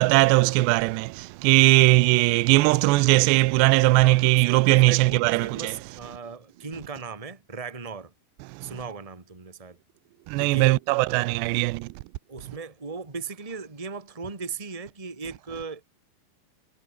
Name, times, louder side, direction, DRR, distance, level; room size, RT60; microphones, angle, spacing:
voice 1, 0.0-5.7 8.6-8.7 10.3-11.9, right 21 dB, 85° right, 2.5 m, -19 dB
voice 2, 4.0-8.1 8.6-9.8 10.4-10.8 12.3-15.9, right 5 dB, 15° right, 1.0 m, -38 dB
omnidirectional pair, 5.7 m